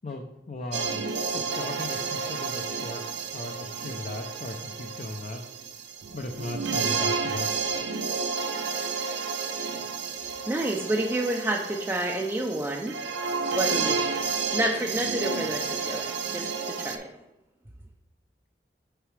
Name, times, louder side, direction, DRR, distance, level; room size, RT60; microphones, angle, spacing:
voice 1, 0.0-1.0 1.3-3.0 3.3-5.4 6.1-7.5, left 2 dB, 40° left, 3 dB, 0.5 m, -37 dB
sound 1, 0.7-17.0, right 5 dB, 85° right, 0.5 m, -31 dB
voice 2, 10.5-12.9 13.5-17.1, right 1 dB, 15° right, 0 dB, 0.4 m, -29 dB
6.7 x 4.7 x 3.2 m, 0.95 s
head